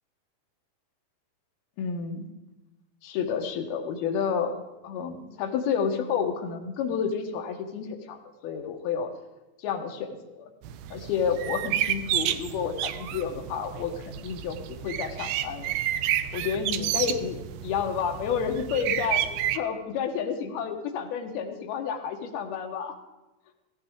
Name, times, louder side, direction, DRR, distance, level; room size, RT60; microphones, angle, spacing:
voice 1, 1.8-2.2 3.0-4.5 4.8-8.2 8.4-9.1 9.6-10.5 10.9-15.7 16.3-17.4 17.6-23.0, left 7 dB, 80° left, 4 dB, 3.1 m, -30 dB
sound 1, 10.6-19.6, right 12 dB, 80° right, 1.9 m, -30 dB
16.0 x 16.0 x 3.7 m, 1.1 s
omnidirectional pair, 4.4 m